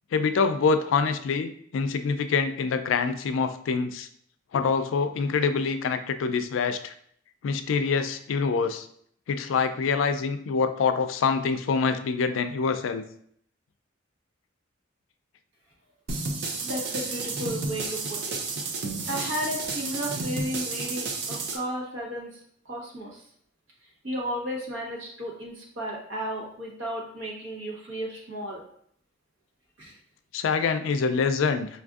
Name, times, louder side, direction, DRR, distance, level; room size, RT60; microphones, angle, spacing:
voice 1, 0.1-4.1 4.5-6.9 7.4-8.9 9.3-13.0 30.3-31.7, left 5 dB, 80° left, 8 dB, 0.3 m, -25 dB
sound 1, 16.1-21.6, right 3 dB, 60° right, 0.5 m, -32 dB
voice 2, 16.6-18.4 19.1-22.4 22.6-23.2 24.0-28.6 29.8-29.9, equal, 90° right, -3 dB, 1.2 m, -34 dB
5.1 x 2.5 x 2.4 m, 0.65 s
head